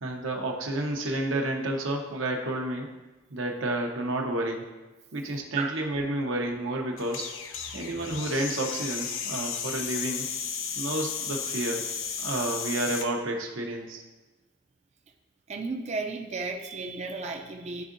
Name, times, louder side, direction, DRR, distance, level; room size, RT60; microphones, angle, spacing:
voice 1, 0.0-2.9 3.3-4.7 5.1-7.3 7.7-10.3 10.8-11.8 12.2-14.0, right 1 dB, 80° right, 2 dB, 0.8 m, -30 dB
sound 1, 7.0-13.1, left 7 dB, 70° left, 0.5 m, -34 dB
voice 2, 15.5-17.8, right 4 dB, 35° right, 3 dB, 0.4 m, -33 dB
10.5 x 3.6 x 2.6 m, 1.2 s
head